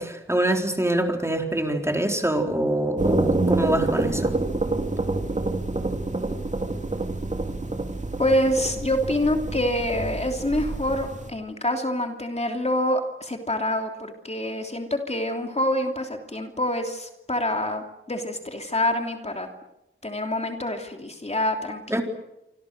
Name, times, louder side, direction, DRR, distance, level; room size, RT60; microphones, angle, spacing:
voice 1, 0.0-4.4 21.9-22.0, right 1 dB, 15° right, 3 dB, 4.0 m, -25 dB
sound 1, 3.0-11.3, right 2 dB, 35° right, 2.8 m, -27 dB
voice 2, 8.2-19.5 20.0-22.0, left 1 dB, 30° left, 4 dB, 3.1 m, -26 dB
27.5 x 25.5 x 6.7 m, 0.89 s
wide cardioid pair, 75°, 20 cm